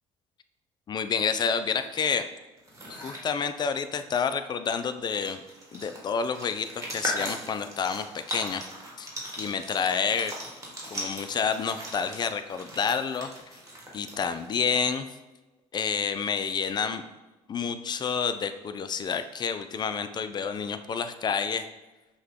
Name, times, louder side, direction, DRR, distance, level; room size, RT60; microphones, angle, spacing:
voice 1, 0.9-2.3 2.9-5.4 5.7-8.7 9.0-9.1 9.4-10.3 10.9-13.3 13.9-15.1 15.7-17.0 17.5-21.7, left 6 dB, 35° left, 10 dB, 0.3 m, -29 dB
sound 1, 2.6-3.2 4.7-4.8 5.0-14.5, equal, 25° right, 1.3 m, -39 dB
5.6 x 2.2 x 3.5 m, 1.1 s
supercardioid pair, 85°, 13 cm